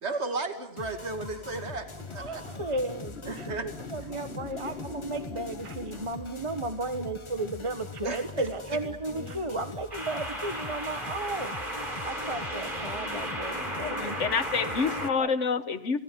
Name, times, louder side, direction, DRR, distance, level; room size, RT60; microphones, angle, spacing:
voice 1, 0.0-2.4 3.3-3.7 8.0-8.5, right 3 dB, 65° right, 7 dB, 2.6 m, -35 dB
sound 1, 0.8-15.1, left 3 dB, 25° left, 1.1 m, -44 dB
sound 2, 1.3-6.0, left 3 dB, 55° left, 2.4 m, -43 dB
voice 2, 2.2-11.5 12.0-14.1 15.2-15.3, right 2 dB, 25° right, 8 dB, 1.6 m, -34 dB
sound 3, 5.9-6.3 9.9-15.1, right 1 dB, 45° right, 5.1 m, -35 dB
voice 3, 9.2-9.6 13.8-16.0, left 5 dB, 85° left, 13 dB, 1.6 m, -29 dB
29.5 x 18.5 x 9.4 m, 0.82 s
omnidirectional pair, 1.2 m